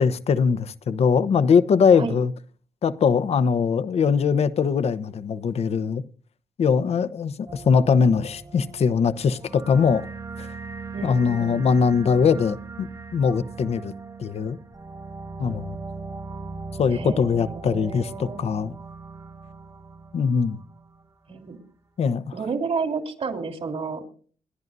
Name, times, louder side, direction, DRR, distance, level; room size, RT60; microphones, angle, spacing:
voice 1, 0.0-2.3 2.8-6.0 6.6-10.1 10.4-10.5 11.0-13.9 14.2-14.6 15.4-15.8 16.8-18.7 20.1-20.6 22.0-22.2, left 6 dB, 60° left, 0.9 m, -21 dB
sound 1, 7.5-21.0, right 4 dB, 30° right, 1.5 m, -39 dB
voice 2, 10.9-11.7 16.9-18.4 21.3-21.6 22.3-24.0, right 5 dB, 55° right, 3.5 m, -31 dB
29.0 x 10.5 x 2.7 m
cardioid pair, 75°, 12 cm